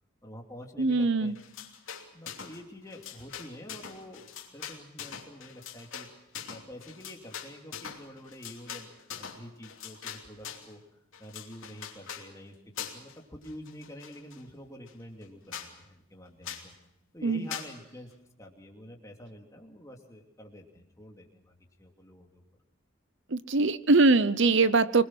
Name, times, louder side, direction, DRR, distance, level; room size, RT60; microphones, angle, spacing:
voice 1, 0.2-1.3 2.1-4.3 4.5-6.1 6.5-10.8 11.2-16.7 17.1-18.1 18.4-22.4, equal, 15° left, 1 dB, 2.7 m, -47 dB
voice 2, 0.8-1.3 17.2-17.5 23.3-25.0, right 3 dB, 55° right, 15 dB, 0.8 m, -22 dB
sound 1, 1.3-2.6 2.9-10.7 11.1-12.3 12.8-13.2 13.4-14.4 14.9-15.0 15.2-15.3 15.5-15.7 16.4-16.7 17.5-17.7, left 8 dB, 70° left, 2.9 m, -42 dB
26.5 x 20.5 x 6.1 m, 0.83 s
head